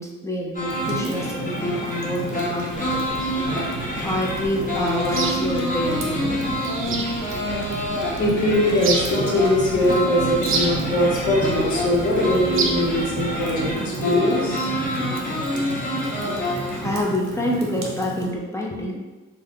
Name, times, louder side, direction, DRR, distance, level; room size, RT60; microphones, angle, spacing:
voice 1, 0.0-3.2 4.0-6.4 16.8-19.0, left 1 dB, 10° left, -3 dB, 0.5 m, -27 dB
sound 1, 0.5-17.0, equal, 25° left, 0.9 m, -27 dB
Fire, 0.7-18.3, right 2 dB, 80° right, 0.7 m, -33 dB
sound 2, 2.7-13.7, right 4 dB, 45° right, 0.4 m, -32 dB
voice 2, 8.2-14.7, left 1 dB, 75° left, -4 dB, 1.0 m, -21 dB
2.6 x 2.3 x 3.6 m, 1.2 s
cardioid pair, 90°, 30 cm